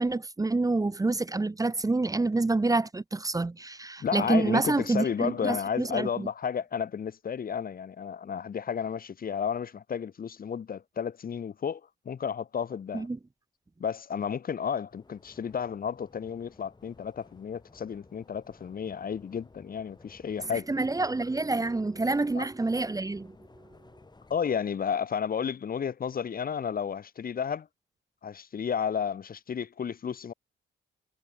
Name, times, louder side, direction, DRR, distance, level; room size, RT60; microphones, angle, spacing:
voice 1, 0.0-6.3 12.9-13.2 20.5-23.4, right 3 dB, 15° right, 1.5 m, -27 dB
voice 2, 4.0-11.8 12.1-13.1 13.8-20.7 22.4-22.5 24.3-27.7 28.2-30.3, left 7 dB, 45° left, 2.4 m, -32 dB
sound 1, 14.9-24.4, left 3 dB, 20° left, 7.8 m, -56 dB
cardioid pair, 90°, 20 cm